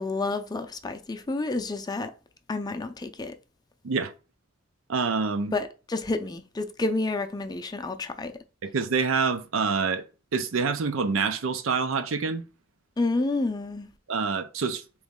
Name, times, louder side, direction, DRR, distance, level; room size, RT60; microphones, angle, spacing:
voice 1, 0.0-2.1 2.5-3.3 5.5-8.3 13.0-13.9, left 2 dB, 20° left, 0.4 m, -29 dB
voice 2, 4.9-5.6 8.6-10.0 10.3-12.4 14.1-14.8, right 5 dB, 90° right, 0.6 m, -26 dB
3.9 x 3.1 x 3.6 m
head